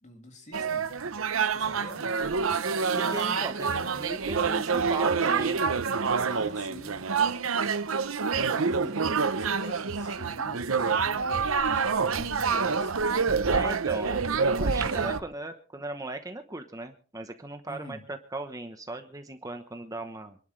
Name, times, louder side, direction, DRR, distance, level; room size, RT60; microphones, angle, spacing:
voice 1, 0.0-0.9 1.5-2.1 6.3-7.1 8.4-13.0 17.6-18.1, left 1 dB, 35° left, 4 dB, 2.9 m, -46 dB
sound 1, 0.5-15.2, right 5 dB, 70° right, 0.9 m, -27 dB
voice 2, 2.9-5.6 13.5-20.4, right 2 dB, 15° right, 6 dB, 1.0 m, -38 dB
26.5 x 11.5 x 3.3 m, 0.41 s
head